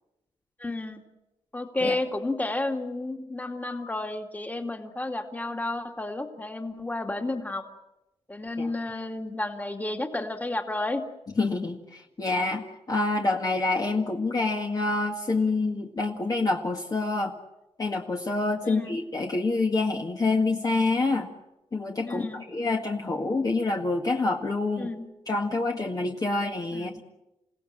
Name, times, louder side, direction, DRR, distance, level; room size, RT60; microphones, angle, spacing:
voice 1, 0.6-1.0 1.5-7.7 8.3-11.0 18.6-19.0 22.1-22.4 24.8-25.0 26.7-26.9, left 2 dB, 15° left, 5 dB, 2.5 m, -31 dB
voice 2, 11.4-17.3 17.8-21.3 21.7-24.9 25.3-27.0, left 3 dB, 35° left, 1 dB, 1.8 m, -27 dB
28.0 x 17.5 x 9.0 m, 0.96 s
wide cardioid pair, 115°, 11 cm